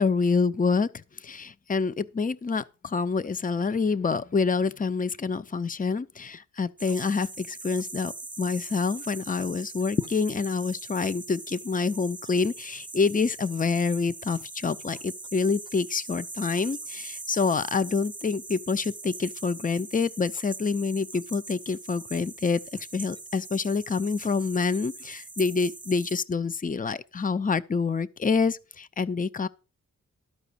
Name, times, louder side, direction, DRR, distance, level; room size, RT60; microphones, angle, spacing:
voice 1, 0.0-29.5, left 4 dB, 30° left, 0.6 m, -27 dB
sound 1, 6.8-26.2, right 3 dB, 15° right, 0.7 m, -41 dB
13.0 x 4.9 x 6.8 m
cardioid pair, 50°, 29 cm